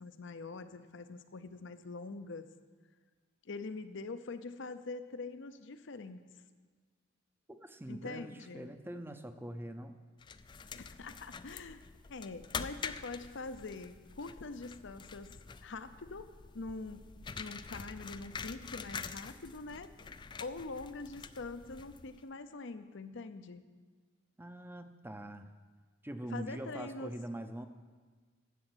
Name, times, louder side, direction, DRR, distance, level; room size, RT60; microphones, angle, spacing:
voice 1, 0.0-2.5 3.4-6.2 7.9-8.7 10.7-11.8 12.1-16.3 16.5-17.1 17.3-19.9 20.4-23.6 26.3-27.1, left 3 dB, 65° left, 11 dB, 0.7 m, -44 dB
voice 2, 7.5-10.0 24.4-25.5 26.0-27.7, right 1 dB, 10° right, 8 dB, 0.6 m, -43 dB
sound 1, 10.2-22.3, left 5 dB, 25° left, 0.3 m, -46 dB
11.0 x 7.8 x 8.0 m, 1.5 s
head